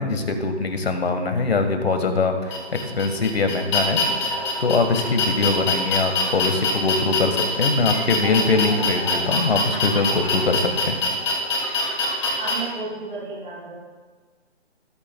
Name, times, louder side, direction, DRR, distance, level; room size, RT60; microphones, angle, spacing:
voice 1, 0.0-11.0, left 3 dB, 60° left, 6 dB, 1.5 m, -23 dB
sound 1, 2.5-12.5, left 3 dB, 30° left, 2.5 m, -24 dB
voice 2, 12.3-13.8, right 3 dB, 45° right, -8 dB, 3.8 m, -33 dB
22.5 x 8.7 x 2.3 m, 1.4 s
hypercardioid pair, 180°, 34 cm